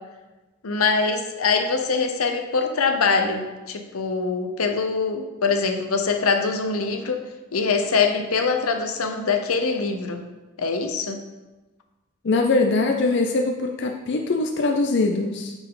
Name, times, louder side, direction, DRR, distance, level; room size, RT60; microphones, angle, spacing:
voice 1, 0.6-7.2 7.5-10.2 10.6-11.2, left 4 dB, 85° left, 5 dB, 0.8 m, -23 dB
voice 2, 12.2-15.5, left 3 dB, 50° left, 3 dB, 0.5 m, -22 dB
7.9 x 4.6 x 3.8 m, 1.1 s
head